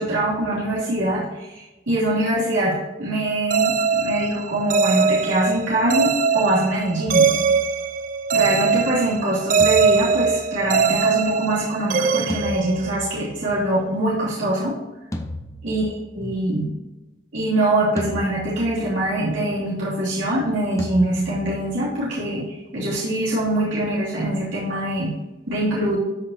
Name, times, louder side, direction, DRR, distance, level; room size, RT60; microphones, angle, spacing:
voice 1, 0.0-7.3 8.3-14.7 15.6-16.6 17.3-25.1 25.5-26.0, right 1 dB, 85° right, -7 dB, 2.9 m, -23 dB
sound 1, 3.5-13.3, right 5 dB, 45° right, 0.4 m, -21 dB
sound 2, 7.1-8.4 9.6-11.3 12.3-13.6 15.1-16.5 18.0-19.1 20.8-22.2, left 1 dB, 15° left, 0.7 m, -36 dB
12.5 x 5.6 x 2.7 m, 1.0 s
head